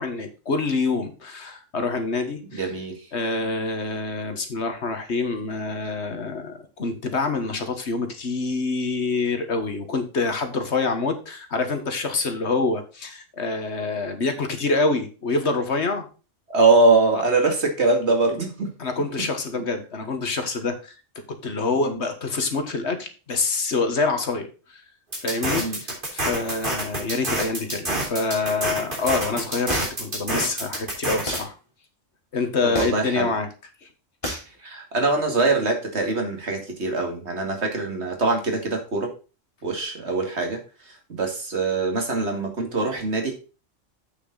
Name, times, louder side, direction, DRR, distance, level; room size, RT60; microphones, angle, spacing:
voice 1, 0.0-2.7 3.1-16.1 17.1-17.2 18.8-20.9 21.3-24.8 25.2-31.6 32.3-33.5, left 3 dB, 60° left, 7 dB, 1.7 m, -26 dB
voice 2, 2.5-3.1 16.5-18.7 21.7-22.0 25.5-25.8 32.6-33.3 34.6-39.1 39.6-43.4, right 3 dB, 60° right, 3 dB, 2.5 m, -23 dB
sound 1, 25.1-31.4, right 1 dB, 45° right, 3.5 m, -28 dB
sound 2, 29.7-30.1 31.3-31.5 32.7-33.1 34.2-34.5, equal, 25° left, 3.4 m, -29 dB
8.2 x 6.8 x 4.0 m, 0.33 s
omnidirectional pair, 1.3 m